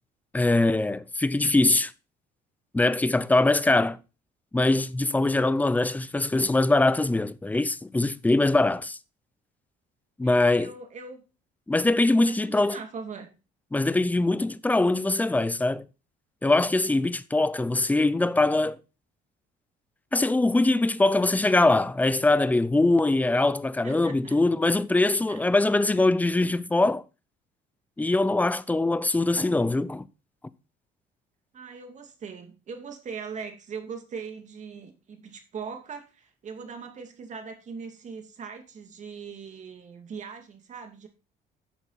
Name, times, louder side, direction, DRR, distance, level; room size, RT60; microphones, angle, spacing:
voice 1, 0.3-1.9 2.7-4.0 4.5-9.0 10.2-10.7 11.7-12.8 13.7-15.8 16.4-18.8 20.1-27.0 28.0-30.1, left 2 dB, 10° left, 0.6 m, -22 dB
voice 2, 10.2-11.2 11.9-13.3 23.8-24.4 25.3-25.4 31.5-41.1, right 5 dB, 45° right, 2.5 m, -40 dB
11.0 x 7.2 x 4.1 m
cardioid pair, 110°, 17 cm